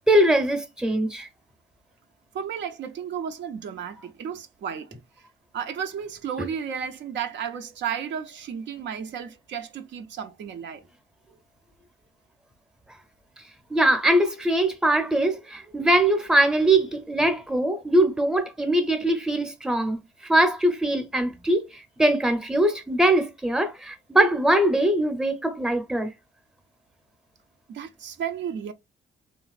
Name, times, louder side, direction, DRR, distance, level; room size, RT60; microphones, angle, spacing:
voice 1, 0.1-1.3 13.7-26.1, right 1 dB, 5° right, 0.7 m, -22 dB
voice 2, 2.3-5.0 5.5-10.8 27.7-28.7, right 8 dB, 65° right, 0.5 m, -33 dB
3.1 x 2.4 x 2.3 m
cardioid pair, 90°, 20 cm